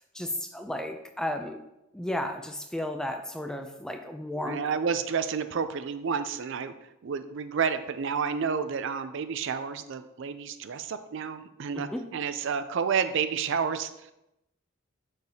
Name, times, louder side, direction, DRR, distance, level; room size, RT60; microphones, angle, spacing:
voice 1, 0.0-1.6 1.9-4.6 11.7-12.0, left 1 dB, 5° left, 5 dB, 0.4 m, -34 dB
voice 2, 4.4-14.1, right 6 dB, 60° right, 10 dB, 0.4 m, -30 dB
6.6 x 6.5 x 2.8 m, 0.87 s
head